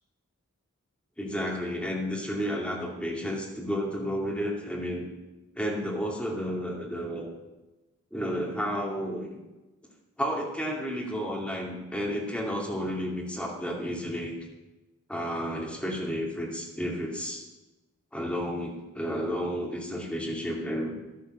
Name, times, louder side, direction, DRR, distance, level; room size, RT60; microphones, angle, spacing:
voice 1, 1.2-5.1 5.5-7.3 8.1-9.3 10.2-14.3 15.1-17.4 18.1-20.9, equal, 5° left, -3 dB, 2.5 m, -31 dB
12.0 x 10.5 x 6.6 m, 1.1 s
head